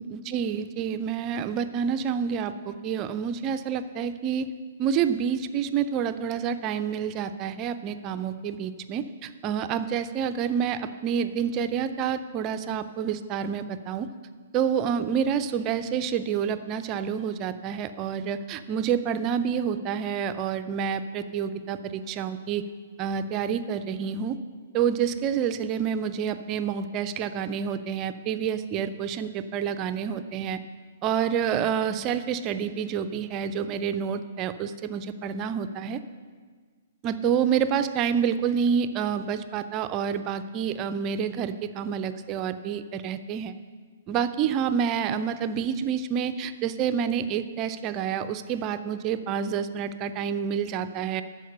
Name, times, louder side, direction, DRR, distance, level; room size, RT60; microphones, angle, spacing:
voice 1, 0.0-4.5 4.8-14.1 14.5-22.6 23.0-24.4 24.7-30.6 31.0-36.0 37.0-43.5 44.1-51.2, right 7 dB, 30° right, 10 dB, 0.5 m, -28 dB
12.0 x 4.8 x 6.8 m, 1.6 s
figure-of-eight pair, 120°, 0 cm